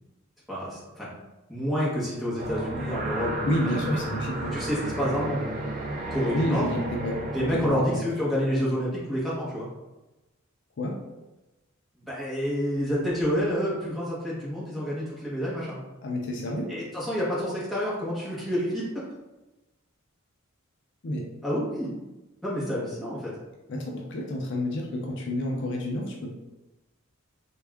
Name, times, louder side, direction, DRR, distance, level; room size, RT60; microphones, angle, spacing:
voice 1, 0.5-1.1 1.5-3.8 4.5-5.5 6.1-6.6 7.3-9.7 12.0-15.8 16.7-19.0 21.4-21.9 22.4-23.3, equal, ahead, -8 dB, 1.1 m, -28 dB
sound 1, 2.4-7.7, right 1 dB, 40° right, 0.5 m, -32 dB
voice 2, 3.4-4.6 6.3-8.0 10.8-11.0 16.0-16.7 21.0-21.3 23.7-26.3, left 1 dB, 60° left, 0 dB, 0.5 m, -29 dB
3.4 x 2.3 x 3.4 m, 1.0 s
head